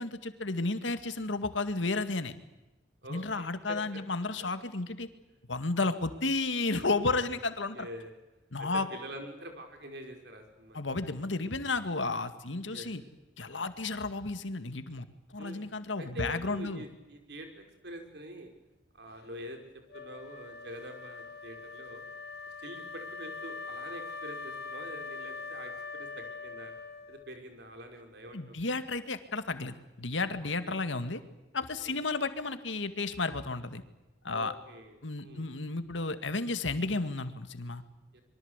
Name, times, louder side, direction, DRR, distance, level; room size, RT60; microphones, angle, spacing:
voice 1, 0.0-2.3 3.1-5.1 5.5-7.9 8.5-8.9 10.7-13.0 13.4-16.8 28.3-31.2 31.5-33.8 34.2-34.5 35.0-37.8, left 3 dB, 85° left, 10 dB, 2.1 m, -32 dB
voice 2, 3.0-3.8 7.7-8.1 8.6-10.8 12.7-12.9 15.4-18.5 18.9-19.6 19.9-22.0 22.6-26.7 27.1-28.6 30.7-30.8 31.7-31.9 34.3-35.5 38.1-38.2, equal, 60° right, 4 dB, 5.4 m, -45 dB
Wind instrument woodwind instrument, 19.9-27.5, left 4 dB, 55° left, 1.2 m, -42 dB
26.0 x 23.5 x 8.2 m, 1.0 s
head